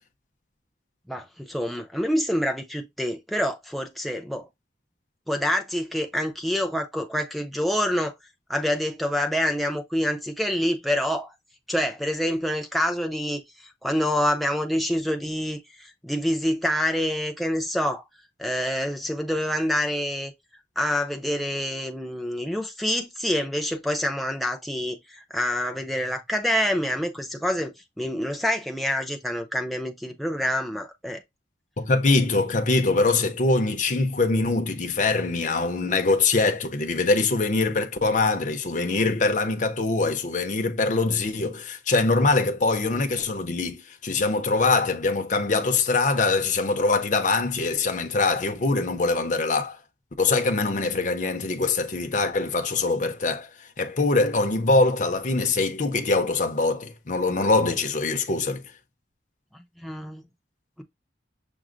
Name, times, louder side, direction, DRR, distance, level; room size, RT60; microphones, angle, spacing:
voice 1, 1.1-4.5 5.3-8.1 8.5-11.3 11.7-18.0 18.4-20.3 20.8-31.2 59.5-60.3, equal, ahead, 0.5 m, -27 dB
voice 2, 31.8-49.8 50.2-53.5 53.8-58.6, left 3 dB, 45° left, 0.7 m, -23 dB
6.0 x 2.1 x 3.8 m
head